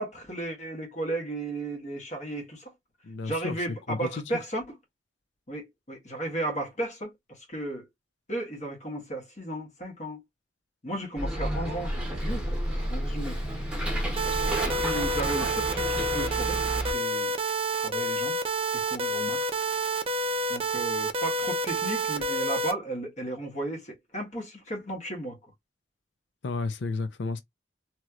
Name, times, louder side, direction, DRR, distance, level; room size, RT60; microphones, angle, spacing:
voice 1, 0.0-2.7 3.2-4.8 5.5-7.8 8.3-10.2 10.8-12.6 12.9-13.6 14.6-16.6 16.9-17.3 17.7-18.4 18.7-19.5 20.5-25.4, right 1 dB, 45° left, 1.5 m, -34 dB
voice 2, 3.0-3.5 3.9-4.2 26.4-27.4, left 3 dB, 80° left, 0.5 m, -32 dB
Bus, 11.2-16.9, right 1 dB, 5° right, 1.0 m, -31 dB
sound 1, 14.2-22.7, right 2 dB, 35° right, 0.5 m, -29 dB
3.0 x 2.9 x 2.4 m
head